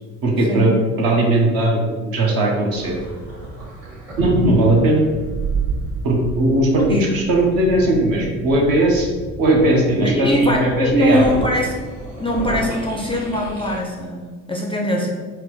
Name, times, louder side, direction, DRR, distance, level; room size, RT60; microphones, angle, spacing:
voice 1, 0.2-0.7 1.0-2.9 4.2-5.1 6.0-9.1 9.4-11.2, right 1 dB, 55° right, -1 dB, 1.0 m, -18 dB
sound 1, 2.7-13.8, right 3 dB, 35° right, 1.4 m, -30 dB
voice 2, 10.0-11.7 12.2-15.1, equal, 15° left, -1 dB, 0.4 m, -21 dB
4.3 x 2.0 x 3.1 m, 1.4 s
hypercardioid pair, 55°, 42 cm